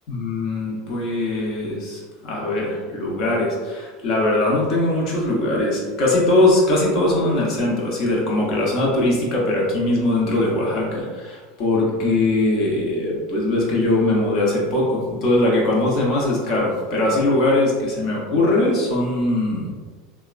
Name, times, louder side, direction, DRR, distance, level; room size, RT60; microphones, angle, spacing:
voice 1, 0.1-19.7, left 2 dB, 55° left, -3 dB, 0.9 m, -21 dB
2.8 x 2.2 x 2.4 m, 1.4 s
hypercardioid pair, 95°, 0 cm